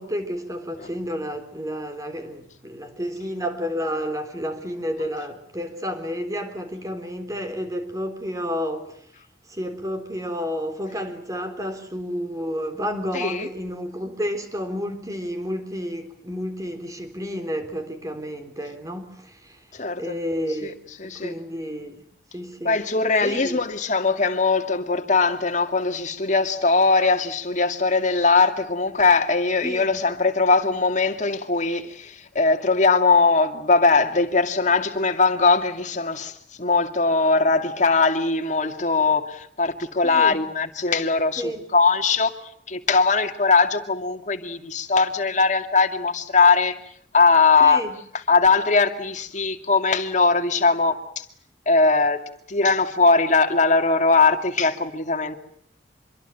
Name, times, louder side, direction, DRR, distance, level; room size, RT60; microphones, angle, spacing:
voice 1, 0.0-8.9 9.5-19.6 20.0-20.8 21.1-22.0 22.3-22.8 23.2-23.6 29.6-30.0 40.0-40.4 41.4-41.6 47.6-47.9, equal, 20° right, 3.9 m, -31 dB
voice 2, 13.1-13.5 19.7-20.2 20.6-20.7 21.0-21.3 22.6-36.3 36.6-42.3 42.7-46.8 47.1-47.8 48.3-51.2 51.7-52.2 52.5-55.4, left 4 dB, 40° left, 2.4 m, -20 dB
26.0 x 23.0 x 9.2 m
head